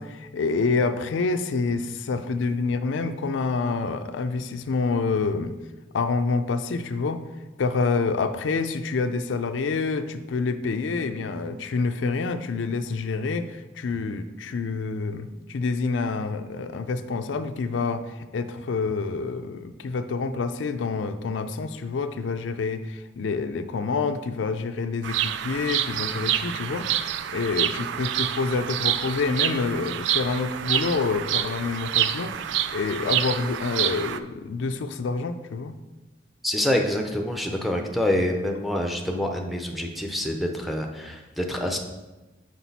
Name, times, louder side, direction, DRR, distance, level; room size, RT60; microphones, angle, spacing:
voice 1, 0.0-5.5 5.9-7.2 7.6-26.9 27.3-35.7, left 4 dB, 85° left, 9 dB, 0.4 m, -27 dB
Bird vocalization bird call bird song, 25.0-34.2, right 11 dB, 70° right, 0.3 m, -27 dB
voice 2, 36.4-41.8, left 1 dB, ahead, 2 dB, 0.5 m, -26 dB
5.9 x 4.9 x 4.1 m, 1.1 s
head